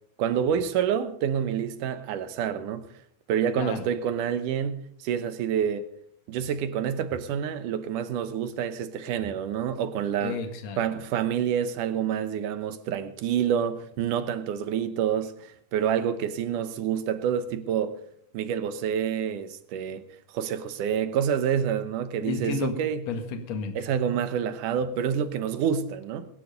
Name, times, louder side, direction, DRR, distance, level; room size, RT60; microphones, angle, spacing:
voice 1, 0.2-2.9 3.3-5.9 6.3-10.4 10.8-18.0 18.3-20.0 20.3-23.0 23.8-26.3, right 8 dB, 80° right, 2.6 m, -28 dB
voice 2, 10.2-10.8 22.2-22.8 23.1-23.8, left 4 dB, 60° left, 2.8 m, -31 dB
21.0 x 11.0 x 5.3 m
omnidirectional pair, 3.6 m